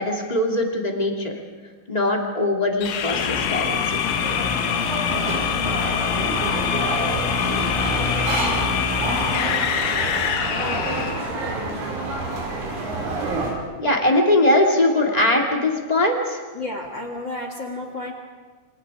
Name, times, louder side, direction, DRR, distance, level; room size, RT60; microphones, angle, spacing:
voice 1, 0.0-1.3 1.9-4.0 13.8-16.4, left 1 dB, 20° left, 0 dB, 1.0 m, -21 dB
sound 1, 2.8-11.3, left 8 dB, 80° left, 4.1 m, -24 dB
sound 2, 3.4-13.5, right 2 dB, 75° right, 7.8 m, -28 dB
voice 2, 16.5-18.1, left 2 dB, 50° left, 3 dB, 1.3 m, -31 dB
27.5 x 27.0 x 4.9 m, 1.4 s
omnidirectional pair, 5.6 m